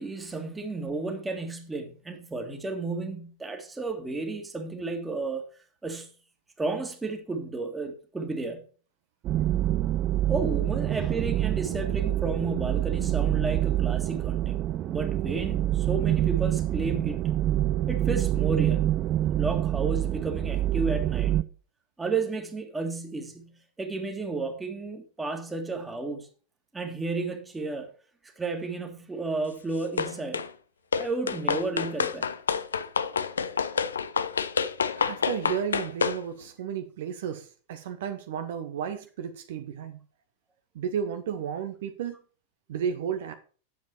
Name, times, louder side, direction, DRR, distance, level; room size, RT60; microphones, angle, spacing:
voice 1, 0.0-5.4 5.8-6.1 6.6-8.6 10.3-17.3 17.9-19.0 19.4-21.3 22.0-26.3 26.7-27.9 28.4-30.4 30.9-32.4, right 3 dB, 10° right, 1.9 m, -32 dB
sound 1, 9.2-21.4, right 13 dB, 35° right, 0.5 m, -26 dB
sound 2, 30.0-30.5 30.9-36.2, left 6 dB, 70° left, 0.6 m, -28 dB
voice 2, 35.0-40.0 40.7-42.2 42.7-43.3, right 8 dB, 55° right, 0.9 m, -33 dB
9.5 x 7.4 x 4.4 m
figure-of-eight pair, 90°, 0 cm